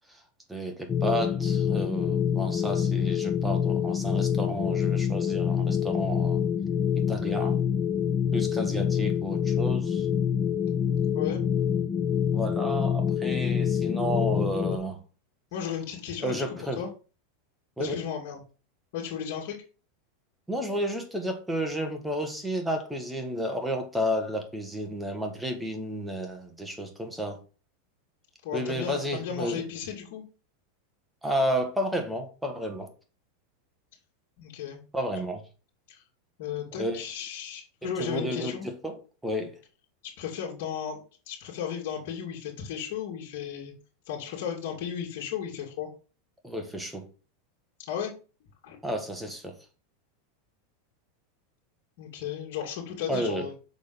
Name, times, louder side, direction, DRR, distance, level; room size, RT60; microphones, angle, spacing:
voice 1, 0.5-6.4 7.0-7.6 8.3-10.1 12.3-15.0 16.2-16.9 17.8-18.0 20.5-27.4 28.5-29.6 31.2-32.9 34.9-35.4 36.8-37.0 37.8-39.6 46.4-47.1 48.8-49.6 53.1-53.5, equal, 5° right, 1.6 m, -32 dB
sound 1, 0.9-14.8, left 8 dB, 25° left, 0.6 m, -26 dB
voice 2, 15.5-16.9 17.8-18.4 18.9-19.6 28.4-30.2 34.4-34.8 35.9-36.0 36.4-38.7 40.0-41.0 41.3-43.7 44.1-45.9 47.8-48.1 48.6-48.8 52.0-53.5, left 8 dB, 60° left, 2.3 m, -34 dB
6.5 x 4.0 x 5.3 m
supercardioid pair, 130°, 0 cm